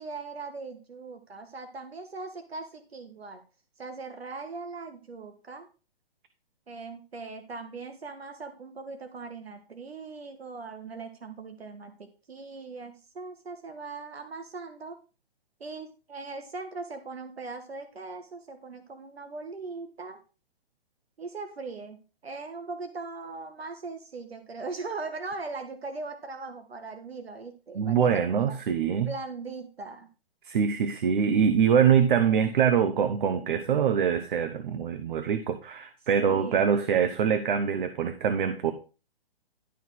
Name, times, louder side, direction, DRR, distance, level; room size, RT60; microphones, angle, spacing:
voice 1, 0.0-3.4 3.8-5.7 6.7-14.9 15.6-20.2 21.2-28.6 29.0-30.1 36.2-36.8, right 3 dB, 80° right, 6 dB, 1.5 m, -40 dB
voice 2, 27.7-29.1 30.4-38.7, right 7 dB, 55° right, 9 dB, 1.1 m, -24 dB
12.0 x 4.1 x 6.4 m, 0.34 s
figure-of-eight pair, 130°, 31 cm